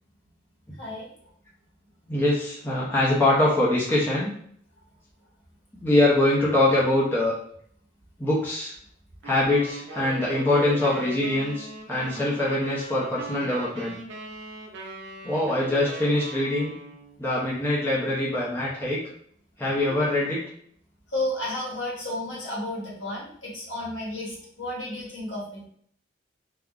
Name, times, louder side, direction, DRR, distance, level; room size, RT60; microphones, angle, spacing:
voice 1, 0.8-1.1 21.1-25.7, left 1 dB, 80° left, -5 dB, 1.3 m, -32 dB
voice 2, 2.1-4.3 5.8-7.3 8.2-8.7 9.2-14.0 15.2-16.8 17.2-19.0 19.6-20.4, left 1 dB, 10° left, -6 dB, 0.5 m, -23 dB
sound 1, 9.2-17.2, right 2 dB, 70° right, 0.4 m, -40 dB
3.4 x 2.1 x 2.4 m, 0.63 s
head